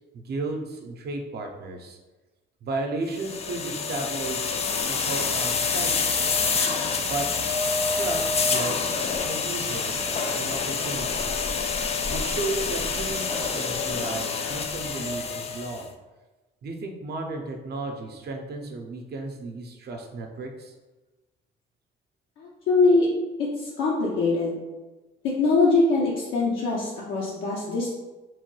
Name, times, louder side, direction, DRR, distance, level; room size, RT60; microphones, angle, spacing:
voice 1, 0.1-2.0 2.6-4.5 4.8-6.1 7.1-7.3 7.9-8.8 9.2-10.0 10.3-11.2 12.1-15.9 16.6-20.7, right 2 dB, 55° right, 3 dB, 0.6 m, -34 dB
sound 1, 3.1-15.8, left 5 dB, 30° left, 0.3 m, -27 dB
voice 2, 22.4-23.1 23.6-24.6 25.2-27.9, left 3 dB, 80° left, -5 dB, 0.6 m, -22 dB
3.1 x 2.2 x 3.0 m, 1.2 s
cardioid pair, 90°, 20 cm